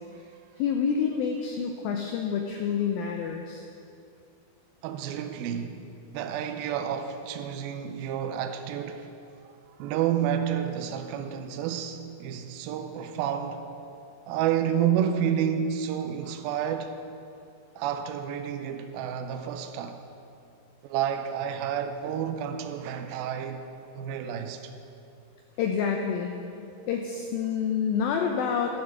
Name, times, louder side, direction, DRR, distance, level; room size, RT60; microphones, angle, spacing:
voice 1, 0.6-3.6 25.6-26.3 26.9-28.8, left 7 dB, 80° left, 2.2 m, -28 dB
voice 2, 4.8-5.9 6.1-9.1 9.8-13.7 14.3-17.0 17.8-20.0 20.8-23.6 23.9-24.7, right 9 dB, 85° right, 2.2 m, -30 dB
13.0 x 7.2 x 6.0 m
omnidirectional pair, 4.8 m